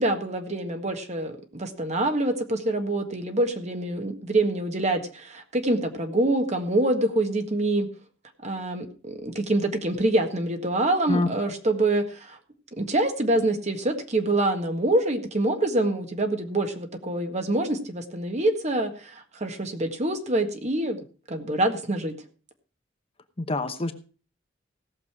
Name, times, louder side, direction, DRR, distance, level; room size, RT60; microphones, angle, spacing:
voice 1, 0.0-7.9 8.4-12.4 12.8-21.0 21.3-22.1, right 1 dB, 35° right, 6 dB, 1.7 m, -25 dB
voice 2, 11.1-11.5 23.4-23.9, left 2 dB, 30° left, 8 dB, 0.9 m, -26 dB
17.0 x 6.8 x 4.8 m, 0.37 s
head